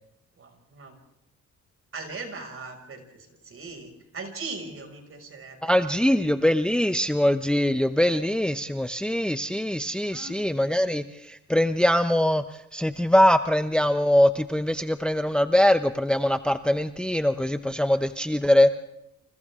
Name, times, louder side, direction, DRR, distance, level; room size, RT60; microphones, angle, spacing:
voice 1, 0.4-1.0 1.9-6.2 10.1-10.4 18.0-18.2, right 3 dB, 45° right, 4 dB, 6.2 m, -40 dB
voice 2, 5.6-18.7, left 1 dB, 5° left, 10 dB, 0.8 m, -22 dB
29.5 x 27.5 x 3.7 m, 0.83 s
cardioid pair, 90°, 30 cm